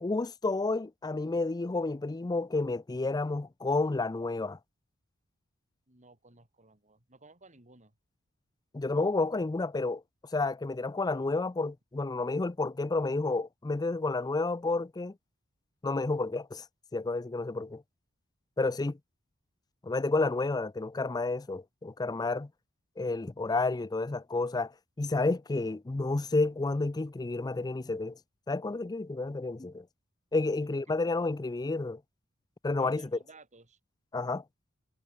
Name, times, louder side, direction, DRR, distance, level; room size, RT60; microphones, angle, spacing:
voice 1, 0.0-4.6 8.7-10.0 10.3-15.1 15.8-16.6 16.9-17.8 18.6-19.0 19.8-22.5 23.0-24.7 25.0-28.2 28.5-29.8 30.3-32.0 32.6-33.1 34.1-34.4, left 3 dB, 20° left, 0.4 m, -30 dB
voice 2, 5.9-7.9 30.5-30.6 30.9-31.0 32.8-33.8, right 3 dB, 35° right, 3.9 m, -57 dB
head